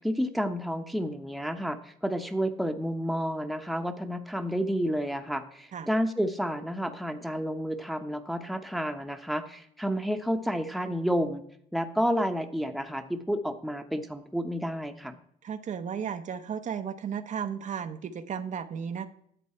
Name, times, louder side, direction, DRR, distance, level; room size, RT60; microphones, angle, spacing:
voice 1, 0.0-11.4 11.7-15.2, equal, ahead, 6 dB, 1.0 m, -30 dB
voice 2, 15.4-19.1, right 7 dB, 45° right, 8 dB, 0.8 m, -34 dB
11.0 x 7.6 x 4.4 m, 0.69 s
supercardioid pair, 85°, 17 cm